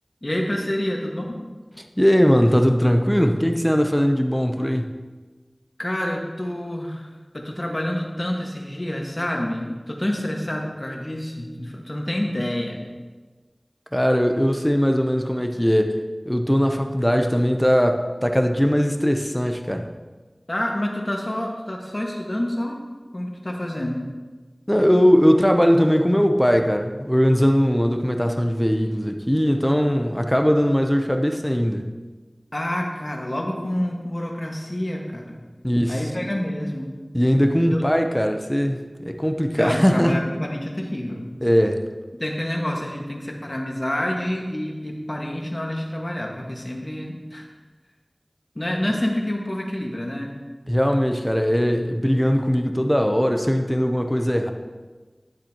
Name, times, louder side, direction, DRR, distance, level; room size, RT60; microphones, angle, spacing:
voice 1, 0.2-1.4 5.8-12.8 20.5-22.8 23.1-24.1 32.5-35.4 35.9-36.9 37.7-37.8 39.5-41.3 42.2-47.5 48.5-50.3, left 1 dB, 45° left, 0 dB, 1.6 m, -28 dB
voice 2, 2.0-4.9 13.9-16.0 16.3-19.9 24.7-31.9 35.6-36.1 37.1-40.2 41.4-41.8 50.7-54.5, equal, 5° left, 5 dB, 0.7 m, -20 dB
11.5 x 7.5 x 2.9 m, 1.3 s
wide cardioid pair, 40°, 0 cm